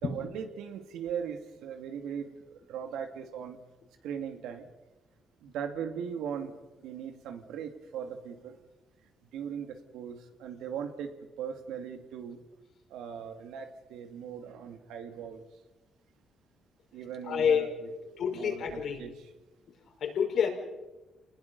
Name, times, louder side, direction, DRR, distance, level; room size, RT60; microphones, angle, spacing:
voice 1, 0.0-3.6 4.0-4.7 5.4-6.5 6.8-8.6 9.3-12.4 12.9-15.4 16.9-17.7 18.0-19.1, right 8 dB, 90° right, 6 dB, 2.4 m, -39 dB
voice 2, 17.3-17.7 18.2-19.0 20.0-20.5, left 7 dB, 65° left, 3 dB, 5.3 m, -28 dB
28.5 x 20.0 x 5.5 m, 1.1 s
cardioid pair, 90°, 0 cm